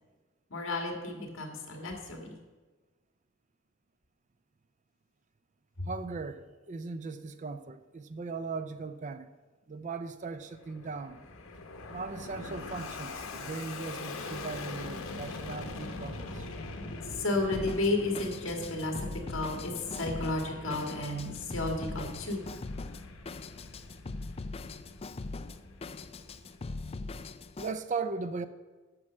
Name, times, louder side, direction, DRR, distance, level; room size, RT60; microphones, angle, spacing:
voice 1, 0.5-2.4 5.8-5.9 17.1-22.4, left 2 dB, 65° left, 2.0 m, -32 dB
voice 2, 5.9-9.3 9.7-11.2 11.9-16.5 27.6-28.5, right 4 dB, 35° right, 0.5 m, -38 dB
Fixed-wing aircraft airplane, 10.4-27.0, left 2 dB, 80° left, 1.1 m, -43 dB
Drum kit, 17.5-27.7, left 3 dB, 30° left, 0.4 m, -41 dB
9.6 x 6.2 x 7.2 m
head